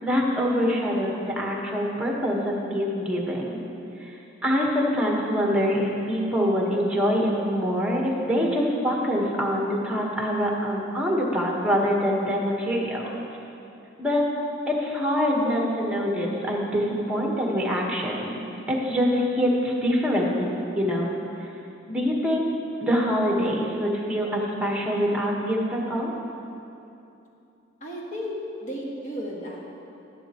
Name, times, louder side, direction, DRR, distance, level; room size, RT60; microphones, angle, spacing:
voice 1, 0.0-3.6 4.0-4.1 4.4-13.1 14.0-14.3 14.7-18.3 18.7-21.1 21.9-22.5 22.8-26.1, equal, 5° right, -2 dB, 1.2 m, -25 dB
voice 2, 27.8-28.3 28.6-29.6, equal, 40° left, -3 dB, 1.6 m, -33 dB
11.5 x 11.0 x 3.0 m, 2.8 s
head